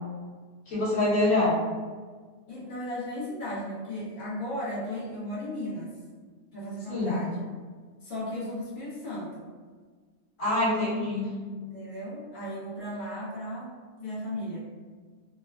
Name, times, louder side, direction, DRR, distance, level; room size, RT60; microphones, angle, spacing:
voice 1, 0.7-1.5 6.9-7.2 10.4-11.3, left 2 dB, 65° left, -9 dB, 1.5 m, -25 dB
voice 2, 2.5-5.9 6.5-7.4 8.0-9.5 11.6-13.7 14.0-14.7, left 1 dB, 40° left, -8 dB, 0.9 m, -35 dB
3.3 x 2.1 x 2.3 m, 1.5 s
omnidirectional pair, 1.5 m